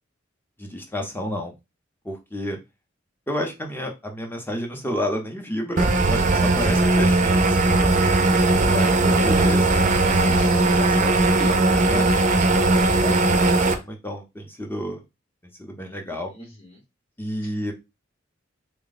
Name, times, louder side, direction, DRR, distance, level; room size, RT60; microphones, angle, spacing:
voice 1, 0.6-1.5 2.0-2.6 3.3-7.9 8.6-9.9 10.7-12.1 13.0-15.0 15.6-16.3 17.2-17.7, equal, 10° left, 3 dB, 0.8 m, -31 dB
sound 1, 5.8-13.7, right 2 dB, 40° right, 0.5 m, -19 dB
voice 2, 8.5-9.7 10.2-10.8 11.4-11.6 16.3-16.8 17.4-17.5, left 1 dB, 40° left, -2 dB, 1.0 m, -37 dB
3.5 x 2.2 x 3.9 m, 0.24 s
head